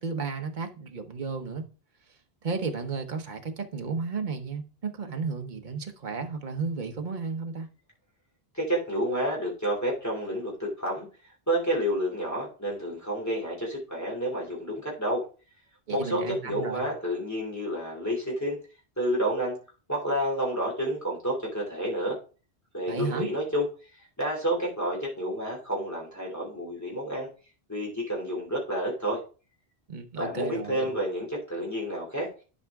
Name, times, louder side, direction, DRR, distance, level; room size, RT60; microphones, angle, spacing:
voice 1, 0.0-1.6 2.4-7.7 15.9-16.8 22.9-23.3 29.9-30.9, right 4 dB, 50° right, 1.1 m, -33 dB
voice 2, 8.5-11.1 11.5-15.2 15.9-18.6 19.0-19.6 19.9-22.2 22.7-23.6 24.2-27.3 27.7-29.2 30.2-32.3, equal, 15° left, 2.6 m, -29 dB
11.0 x 4.9 x 3.5 m
omnidirectional pair, 1.1 m